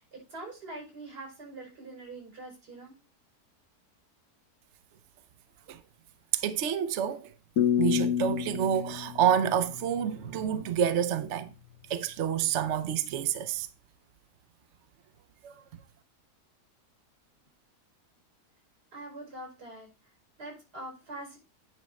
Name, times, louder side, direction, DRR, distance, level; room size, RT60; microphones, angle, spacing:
voice 1, 0.0-2.9 18.9-19.9 20.4-21.4, right 2 dB, 90° right, 5.9 m, -43 dB
voice 2, 6.3-7.3 7.8-11.5 11.9-13.7 15.4-15.5, right 9 dB, 55° right, 0.9 m, -28 dB
sound 1, 7.6-10.5, left 9 dB, 60° left, 1.1 m, -29 dB
9.7 x 4.5 x 5.2 m
omnidirectional pair, 1.7 m